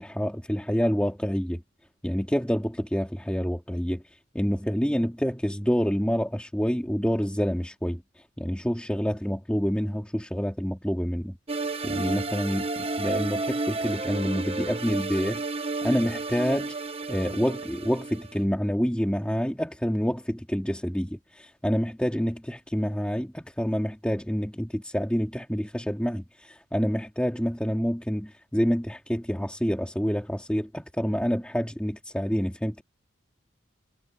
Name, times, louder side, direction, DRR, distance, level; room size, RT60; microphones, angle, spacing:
voice 1, 0.0-1.6 2.0-4.0 4.3-8.0 8.4-11.4 11.8-15.4 15.8-16.7 17.1-32.8, equal, 5° left, 2.6 m, -27 dB
sound 1, 11.5-18.4, right 3 dB, 30° right, 1.2 m, -31 dB
head